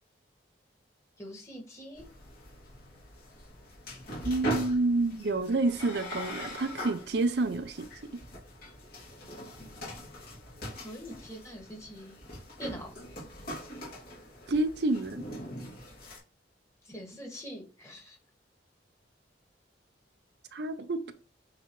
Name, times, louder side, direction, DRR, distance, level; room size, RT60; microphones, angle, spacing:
voice 1, 1.2-2.1 10.8-12.2 12.6-12.9 16.9-18.2, equal, 15° left, 2.1 m, -43 dB
sound 1, 2.0-16.2, equal, 55° left, 2.8 m, -41 dB
voice 2, 4.2-7.9 14.5-15.2 20.5-21.1, right 2 dB, 65° right, 0.6 m, -28 dB
8.7 x 3.9 x 3.2 m
head